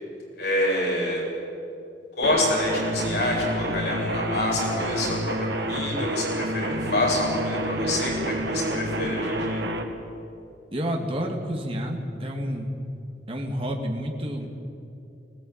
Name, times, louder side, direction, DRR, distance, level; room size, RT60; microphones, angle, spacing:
voice 1, 0.4-1.2 2.2-9.6, left 1 dB, 65° left, -3 dB, 7.4 m, -27 dB
sound 1, 2.2-9.8, right 1 dB, 70° right, 2.0 m, -28 dB
voice 2, 10.7-12.7 13.3-14.5, equal, 30° right, 1 dB, 2.4 m, -29 dB
20.5 x 18.0 x 9.0 m, 2.6 s
head